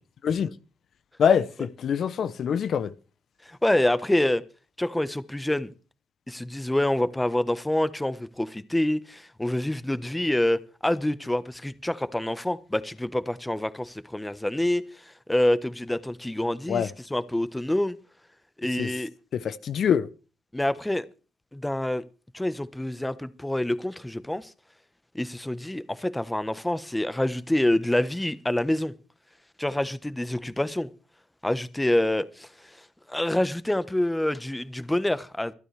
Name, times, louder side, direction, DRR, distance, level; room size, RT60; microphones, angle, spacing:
voice 1, 0.2-0.5 1.2-2.9 16.7-16.9 18.8-18.9 19.3-20.1, left 7 dB, 65° left, 0.7 m, -24 dB
voice 2, 3.4-4.4 4.8-5.7 6.3-18.0 18.6-19.1 20.5-21.0 21.5-22.1 22.3-24.5 25.1-28.9 29.6-30.9 31.4-32.8 33.1-35.5, left 1 dB, 10° left, 1.1 m, -27 dB
25.0 x 9.1 x 3.4 m
supercardioid pair, 65°, 0 cm